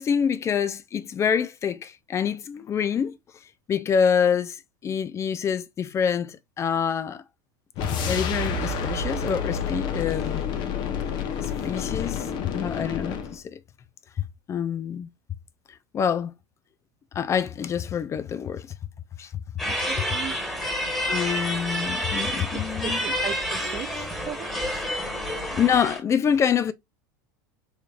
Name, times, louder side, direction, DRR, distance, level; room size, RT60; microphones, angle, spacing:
voice 1, 0.0-3.2 3.7-4.6 4.8-7.2 8.0-10.5 11.4-13.6 14.5-15.1 15.9-16.3 17.1-18.7 19.2-19.3 21.1-23.0 25.6-26.7, left 7 dB, 25° left, 0.4 m, -26 dB
sound 1, 7.8-13.4, left 5 dB, 45° left, 0.9 m, -29 dB
sound 2, 19.6-26.0, equal, 5° left, 1.5 m, -29 dB
voice 2, 19.6-20.4 22.5-24.8, right 10 dB, 35° right, 0.5 m, -38 dB
4.1 x 3.2 x 2.4 m
hypercardioid pair, 100°, 10 cm